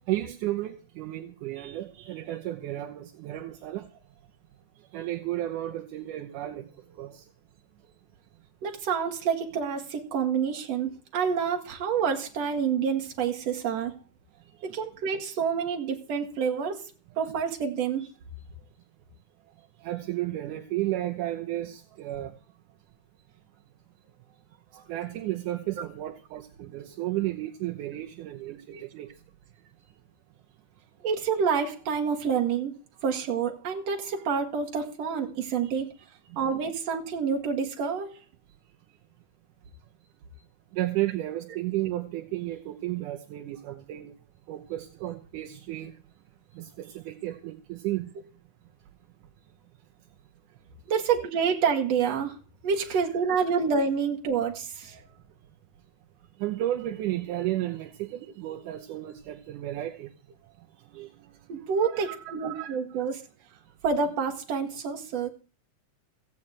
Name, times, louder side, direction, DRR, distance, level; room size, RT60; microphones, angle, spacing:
voice 1, 0.1-3.9 4.9-7.3 7.8-7.9 14.6-14.7 19.8-22.3 24.7-29.1 36.3-36.5 40.7-44.1 44.5-45.9 46.5-48.1 52.9-53.0 54.9-55.1 56.4-60.1 60.9-61.1 61.8-62.8, right 15 dB, 80° right, 4 dB, 2.4 m, -33 dB
voice 2, 8.6-13.9 14.6-16.8 17.2-18.0 28.7-28.8 31.0-32.7 33.0-35.9 36.4-38.1 50.9-52.4 52.6-55.0 61.5-63.2 63.8-65.3, right 6 dB, 55° right, 1 dB, 3.0 m, -28 dB
15.5 x 6.2 x 8.7 m, 0.39 s
omnidirectional pair, 3.7 m